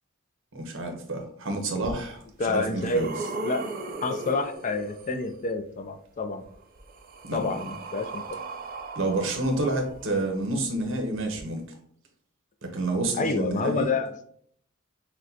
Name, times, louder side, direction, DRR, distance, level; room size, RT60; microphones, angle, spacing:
voice 1, 0.5-2.2 2.5-3.1 7.2-7.6 8.9-11.6 12.6-13.9, right 2 dB, 65° right, 3 dB, 0.9 m, -29 dB
sound 1, 1.8-1.9 2.5-5.3 6.5-10.4 11.3-11.4, right 3 dB, 45° right, 0.4 m, -38 dB
voice 2, 2.4-3.1 3.4-3.6 4.0-6.4 7.3-8.4 13.2-14.1, left 3 dB, 35° left, 8 dB, 0.3 m, -28 dB
6.1 x 2.2 x 2.7 m, 0.63 s
head